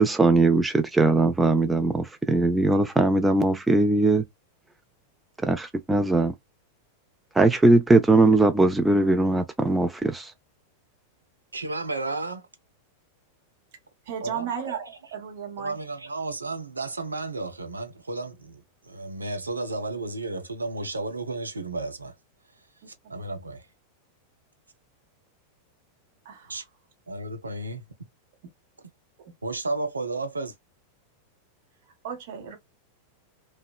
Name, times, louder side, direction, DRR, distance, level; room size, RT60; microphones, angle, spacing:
voice 1, 0.0-4.2 5.4-6.3 7.3-10.3, right 2 dB, 10° right, 0.4 m, -20 dB
voice 2, 11.5-12.5 14.2-14.6 15.6-22.1 23.1-23.7 26.5-26.6 27.1-27.9 29.4-30.5, right 2 dB, 80° right, 0.5 m, -32 dB
voice 3, 14.1-15.8 26.2-26.5 32.0-32.6, right 8 dB, 50° right, 0.8 m, -34 dB
2.8 x 2.1 x 2.3 m
figure-of-eight pair, 90°, 0 cm